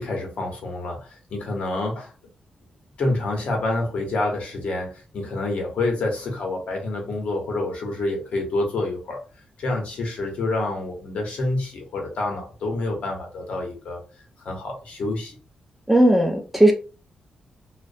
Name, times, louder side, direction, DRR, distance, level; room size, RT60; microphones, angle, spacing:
voice 1, 0.0-2.1 3.0-9.2 9.6-14.0 14.4-15.4, left 2 dB, 65° left, 0.8 m, -27 dB
voice 2, 15.9-16.7, right 1 dB, 5° right, 0.3 m, -16 dB
2.4 x 2.1 x 2.5 m
wide cardioid pair, 165°, 2 cm